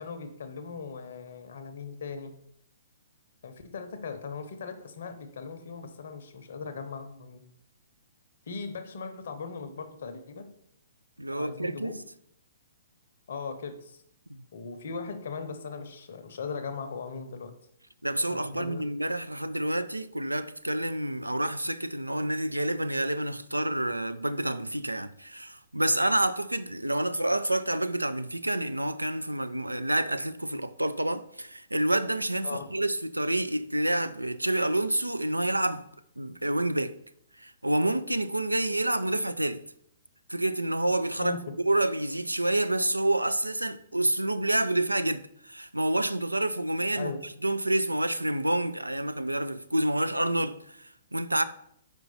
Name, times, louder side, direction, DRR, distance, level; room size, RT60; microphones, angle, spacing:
voice 1, 0.0-2.3 3.4-7.4 8.5-10.5 11.3-11.9 13.3-14.0 14.5-17.5 18.3-18.8 32.4-32.7 41.2-41.4 46.9-47.2, left 5 dB, 55° left, 0.7 m, -39 dB
voice 2, 11.2-12.0 14.3-14.4 18.0-35.8 36.2-37.0 37.4-39.6 40.3-41.4 41.7-51.4, right 1 dB, 85° right, 0.3 m, -28 dB
5.2 x 4.6 x 4.1 m
figure-of-eight pair, 120°, 0 cm